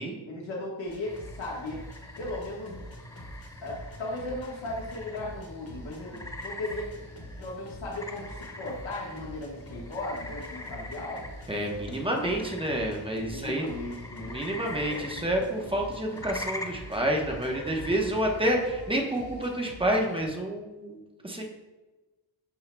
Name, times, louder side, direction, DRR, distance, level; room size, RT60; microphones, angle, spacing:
voice 1, 0.2-1.8 2.2-2.8 3.6-6.9 7.4-11.3 13.3-14.4 14.8-15.1, left 2 dB, 70° left, -4 dB, 1.4 m, -36 dB
sound 1, 0.9-20.3, equal, 50° left, 1.6 m, -46 dB
sound 2, 1.0-18.7, left 1 dB, 10° left, 0.3 m, -43 dB
voice 2, 11.5-13.7 14.3-21.4, right 1 dB, 10° right, 0 dB, 0.9 m, -29 dB
12.0 x 4.6 x 2.2 m, 1.1 s
wide cardioid pair, 160°, 47 cm